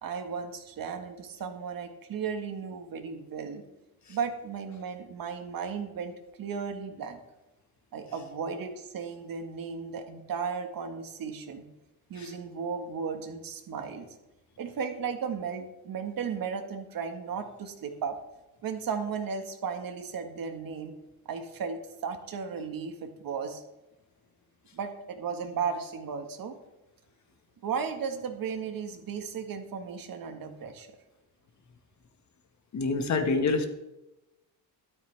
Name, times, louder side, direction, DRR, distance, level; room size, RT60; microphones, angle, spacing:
voice 1, 0.0-3.6 4.1-7.2 7.9-11.6 12.1-14.1 14.6-18.2 18.6-20.9 21.2-23.6 24.7-26.6 27.6-30.9, right 6 dB, 55° right, 6 dB, 1.7 m, -35 dB
voice 2, 32.7-33.7, left 4 dB, 45° left, 6 dB, 1.7 m, -26 dB
13.0 x 12.5 x 3.5 m, 0.98 s
cardioid pair, 130°, 40 cm